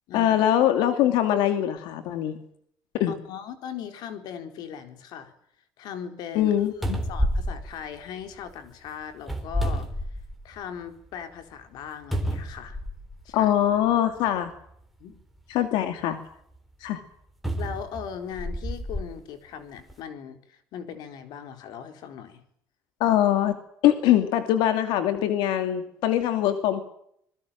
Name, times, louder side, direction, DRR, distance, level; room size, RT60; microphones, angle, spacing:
voice 1, 0.1-2.4 3.0-3.1 6.3-7.0 13.3-14.5 15.5-16.2 16.8-17.0 23.0-23.6 23.8-26.8, left 11 dB, 90° left, 8 dB, 2.6 m, -22 dB
voice 2, 3.1-5.3 5.8-6.5 7.1-9.9 10.4-12.8 13.2-13.5 15.0-15.2 17.6-22.4, left 8 dB, 65° left, 7 dB, 4.2 m, -39 dB
sound 1, 6.4-6.5 6.8-8.5 9.2-10.6 11.1-11.2 12.1-13.2 14.2-14.3 17.4-19.1 19.8-19.9, equal, ahead, 4.0 m, -29 dB
26.5 x 21.5 x 7.6 m, 0.70 s
cardioid pair, 170°, 8 cm